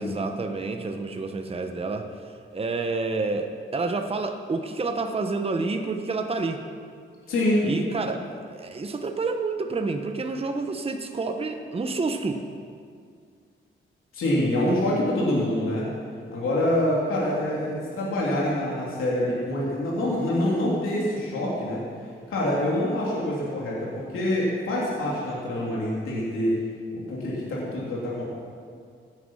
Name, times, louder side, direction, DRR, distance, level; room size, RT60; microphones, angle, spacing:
voice 1, 0.0-2.1 2.5-6.6 7.6-12.4 14.7-14.8, right 3 dB, 30° right, 5 dB, 1.0 m, -29 dB
voice 2, 7.3-7.8 14.1-15.8 16.3-21.8 22.3-26.6 26.9-28.2, left 1 dB, 90° left, -6 dB, 3.2 m, -26 dB
17.0 x 9.8 x 5.6 m, 2.2 s
cardioid pair, 105°, 21 cm